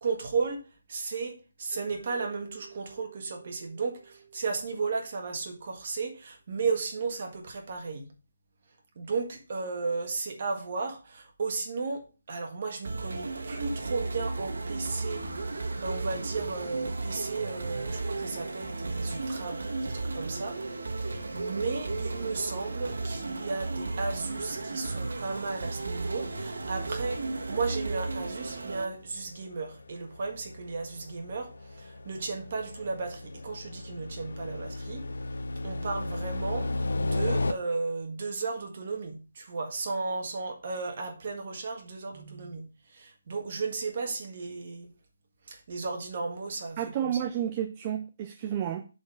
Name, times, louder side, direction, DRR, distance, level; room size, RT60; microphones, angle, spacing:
voice 1, 0.0-8.1 9.0-35.1 35.6-36.7 37.0-44.9 45.5-47.2, right 4 dB, 35° right, 1.7 m, -34 dB
Mallet percussion, 1.7-5.8, right 7 dB, 40° left, 2.0 m, -52 dB
sound 1, 12.8-28.8, right 3 dB, 85° right, 1.3 m, -34 dB
sound 2, 19.2-19.3 20.4-20.7 21.0-21.2 21.5-21.6 22.0-22.1 22.8-22.9 23.0-23.1 23.9-24.0 24.3-37.5, left 2 dB, 80° left, 0.8 m, -36 dB
voice 2, 46.8-48.9, right 10 dB, 15° right, 0.4 m, -31 dB
7.1 x 4.4 x 6.2 m
hypercardioid pair, 175°, 0 cm